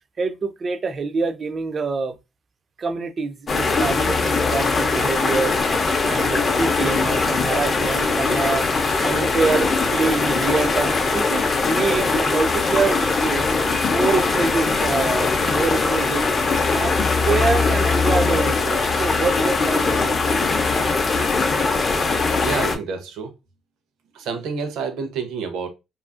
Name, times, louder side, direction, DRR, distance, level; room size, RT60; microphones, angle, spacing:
voice 1, 0.2-2.1 2.8-5.5 6.1-13.5 13.9-16.3 16.7-17.0 17.2-20.2, right 4 dB, 35° right, 0.3 m, -25 dB
sound 1, 3.5-22.8, left 4 dB, 35° left, 0.5 m, -21 dB
voice 2, 22.4-23.3 24.1-25.7, right 5 dB, 85° right, 0.6 m, -28 dB
2.7 x 2.4 x 2.4 m
cardioid pair, 130°, 0 cm